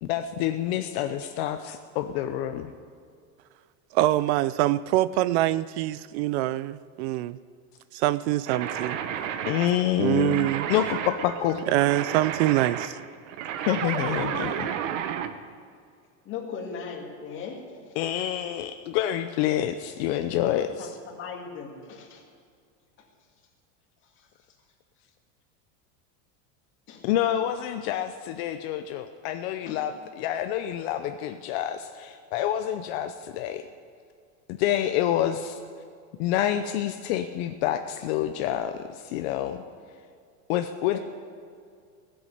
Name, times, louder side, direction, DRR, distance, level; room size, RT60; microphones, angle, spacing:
voice 1, 0.0-2.7 9.5-11.6 13.6-14.7 18.0-20.9 27.0-33.7 34.5-35.6 36.2-39.6 40.5-41.0, left 11 dB, 55° left, 0.7 m, -27 dB
voice 2, 3.9-7.4 7.9-9.0 10.0-10.7 11.7-13.0, right 15 dB, 60° right, 0.5 m, -24 dB
sound 1, 8.4-15.3, right 9 dB, 75° right, 1.1 m, -32 dB
voice 3, 16.2-18.3 20.4-22.2 24.2-24.3 26.9-27.1 29.7-29.8 40.9-41.0, left 5 dB, 30° left, 2.3 m, -39 dB
16.0 x 8.0 x 9.3 m
supercardioid pair, 170°, 38 cm